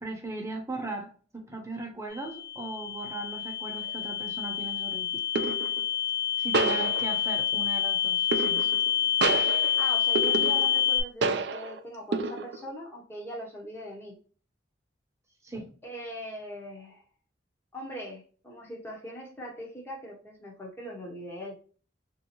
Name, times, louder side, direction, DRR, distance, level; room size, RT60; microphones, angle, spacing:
voice 1, 0.0-5.2 6.4-8.7 15.4-15.7, right 2 dB, 15° right, 0.7 m, -38 dB
sound 1, 2.1-11.0, left 9 dB, 55° left, 1.3 m, -28 dB
sound 2, 3.8-4.0 5.4-5.8 6.5-7.5 8.3-8.9 9.2-10.9 11.2-11.8 12.1-12.7, right 3 dB, 70° right, 0.4 m, -29 dB
voice 2, 9.8-14.1 15.8-17.0 17.7-21.5, equal, 10° left, 0.8 m, -40 dB
3.6 x 2.7 x 2.8 m
head